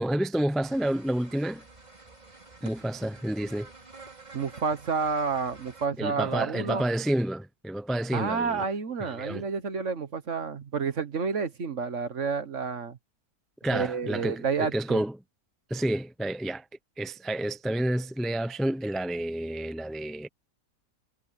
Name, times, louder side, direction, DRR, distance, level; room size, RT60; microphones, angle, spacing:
voice 1, 0.0-1.6 2.6-3.7 6.0-8.6 9.0-9.4 13.6-15.1 15.7-16.6 17.0-20.3, right 1 dB, ahead, 0.6 m, -29 dB
sound 1, 0.6-5.9, right 3 dB, 25° right, 3.1 m, -49 dB
voice 2, 4.3-6.9 8.1-13.0 13.7-15.0, right 5 dB, 50° right, 1.6 m, -30 dB
omnidirectional pair, 1.6 m